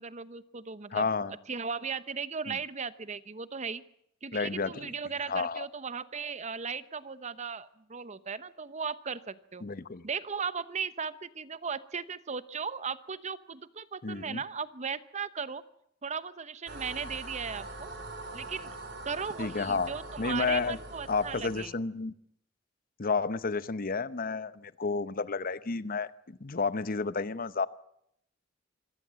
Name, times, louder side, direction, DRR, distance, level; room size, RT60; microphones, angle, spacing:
voice 1, 0.0-1.1 1.5-3.8 4.2-9.7 10.0-15.6 16.0-17.9 18.3-18.7 19.0-21.7, right 5 dB, 35° right, 15 dB, 0.9 m, -37 dB
voice 2, 0.9-1.3 2.5-2.6 4.3-4.9 5.3-5.7 9.6-10.1 14.0-14.4 19.4-19.9 20.2-20.8 21.1-22.1 23.0-27.7, left 4 dB, 45° left, 15 dB, 0.8 m, -31 dB
sound 1, 16.7-21.7, right 2 dB, 60° right, 3.4 m, -43 dB
25.5 x 17.5 x 7.6 m, 0.72 s
head